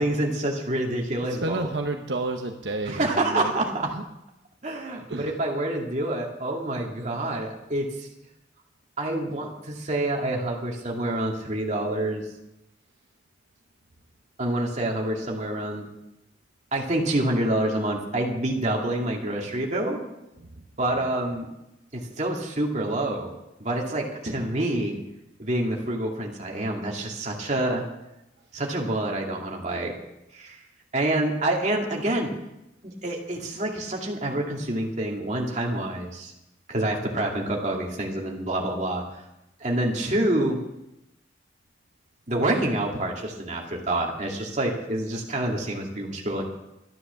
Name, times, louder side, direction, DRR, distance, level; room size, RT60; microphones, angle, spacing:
voice 1, 0.0-1.6 2.8-3.9 4.6-8.1 9.0-12.2 14.4-15.9 16.7-20.0 20.8-21.5 21.9-23.3 23.6-25.0 25.4-27.8 28.5-29.9 30.3-30.6 30.9-32.3 32.8-36.3 36.7-39.0 39.6-40.6 42.3-46.4, right 1 dB, 40° right, 0 dB, 2.3 m, -27 dB
voice 2, 1.3-3.5 3.9-4.0 5.1-5.4 21.0-21.1, right 2 dB, 75° right, 3 dB, 1.0 m, -30 dB
12.5 x 10.0 x 6.9 m, 0.93 s
head